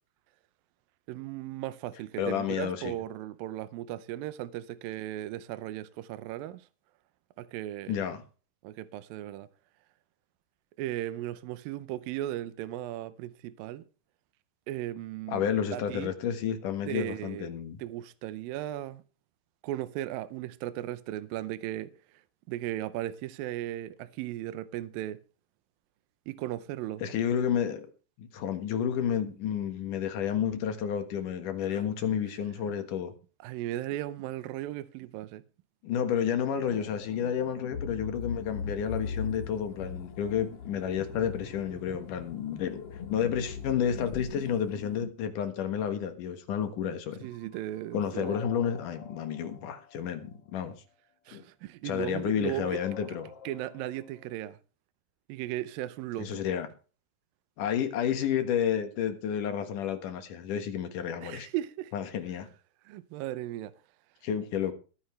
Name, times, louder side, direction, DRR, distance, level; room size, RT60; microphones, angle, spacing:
voice 1, 1.1-6.6 7.4-8.0 8.6-9.5 10.8-13.8 14.7-15.4 15.7-16.1 16.9-17.5 17.8-19.0 19.6-21.9 22.5-25.2 26.3-27.0 31.7-31.8 33.4-35.4 47.2-48.4 51.3-52.7 53.4-54.6 55.3-56.4 61.2-61.9 62.9-63.7, right 14 dB, 80° right, 2.1 m, -36 dB
voice 2, 2.2-3.0 7.9-8.2 15.3-17.8 27.0-27.9 28.2-33.1 35.8-42.8 43.1-47.3 47.9-50.7 51.3-51.4 51.8-53.3 56.2-56.7 57.6-61.5 61.9-62.5 64.2-64.7, left 8 dB, 60° left, 2.6 m, -31 dB
sound 1, 36.6-45.1, left 6 dB, 75° left, 1.4 m, -40 dB
sound 2, 47.2-50.5 52.6-54.4, left 6 dB, 40° left, 1.6 m, -46 dB
21.0 x 9.7 x 3.2 m
omnidirectional pair, 4.8 m